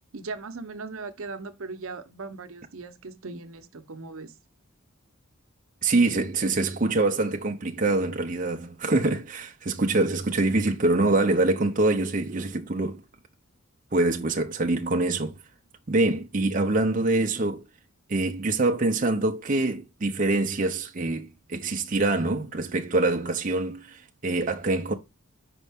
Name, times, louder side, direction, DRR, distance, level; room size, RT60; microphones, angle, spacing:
voice 1, 0.1-4.3, right 3 dB, 75° right, 0.8 m, -38 dB
voice 2, 5.8-13.0 13.9-15.4 15.9-17.6 18.1-24.9, right 2 dB, 40° right, 0.6 m, -25 dB
5.3 x 5.1 x 3.5 m
head